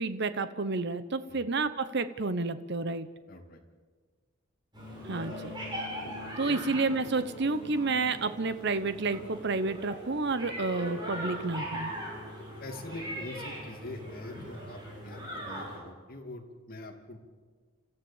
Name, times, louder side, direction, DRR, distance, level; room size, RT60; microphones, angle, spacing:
voice 1, 0.0-3.1 5.1-5.5 6.4-11.9, right 3 dB, 55° right, 12 dB, 0.9 m, -30 dB
voice 2, 3.3-3.6 6.4-6.6 12.6-17.2, left 2 dB, 45° left, 3 dB, 2.6 m, -44 dB
sound 1, 4.7-15.8, equal, 20° right, 6.5 m, -40 dB
27.5 x 15.0 x 7.3 m, 1.5 s
head